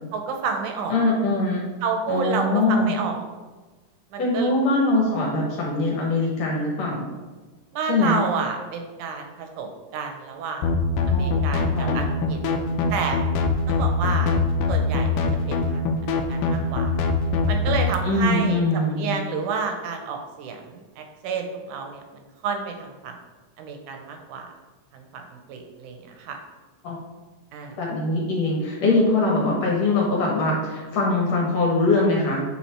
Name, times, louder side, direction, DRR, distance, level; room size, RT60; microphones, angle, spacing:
voice 1, 0.1-1.0 1.8-3.2 4.1-4.5 7.7-10.6 11.1-12.4 12.9-13.3 13.7-14.3 14.7-16.9 17.5-23.1 23.6-24.5 24.9-26.4 27.5-27.8, right 5 dB, 80° right, 4 dB, 2.2 m, -30 dB
voice 2, 0.9-1.7 2.1-3.0 4.2-7.1 7.9-8.2 11.1-12.0 18.0-19.1 26.8-27.0 27.8-32.4, left 2 dB, 60° left, -3 dB, 2.2 m, -22 dB
sound 1, 10.6-17.9, left 3 dB, 85° left, 2.2 m, -23 dB
7.2 x 3.9 x 4.3 m, 1.3 s
omnidirectional pair, 3.7 m